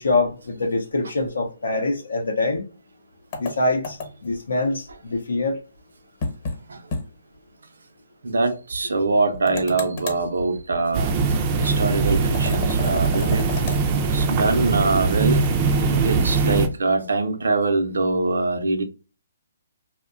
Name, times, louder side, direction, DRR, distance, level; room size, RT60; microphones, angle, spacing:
voice 1, 0.0-2.6 3.4-5.6, left 2 dB, 85° left, 0.5 m, -24 dB
sound 1, 3.3-4.4 6.2-6.6 6.9-7.0 7.4-7.5 9.5-10.3 12.3-13.8, left 3 dB, 40° left, 0.9 m, -31 dB
voice 2, 8.2-11.1 11.6-13.5 14.1-15.4 16.0-18.8, right 3 dB, 85° right, 0.5 m, -23 dB
sound 2, 10.9-16.7, right 4 dB, 25° right, 0.4 m, -21 dB
2.7 x 2.1 x 2.4 m
hypercardioid pair, 160°, 0 cm